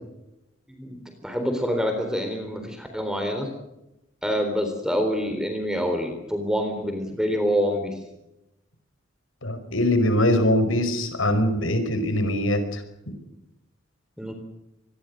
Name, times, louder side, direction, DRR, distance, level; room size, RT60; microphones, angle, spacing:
voice 1, 0.7-3.5 4.2-8.0 14.2-14.3, equal, 5° right, 6 dB, 3.8 m, -26 dB
voice 2, 9.4-12.8, left 1 dB, 90° left, 10 dB, 5.2 m, -22 dB
26.0 x 21.5 x 6.6 m, 0.88 s
head